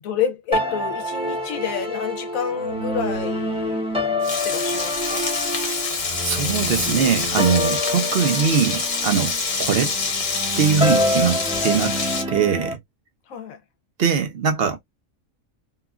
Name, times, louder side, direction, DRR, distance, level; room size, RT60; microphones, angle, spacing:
voice 1, 0.0-3.8 4.3-5.3 13.3-13.6, left 8 dB, 75° left, 1.0 m, -28 dB
sound 1, 0.5-12.7, left 1 dB, 5° right, 0.6 m, -27 dB
Frying (food), 4.2-12.2, left 4 dB, 50° left, 1.0 m, -26 dB
voice 2, 6.2-9.3 9.6-9.9 10.6-12.8 14.0-14.8, right 7 dB, 55° right, 0.8 m, -21 dB
3.0 x 2.3 x 2.3 m
omnidirectional pair, 1.4 m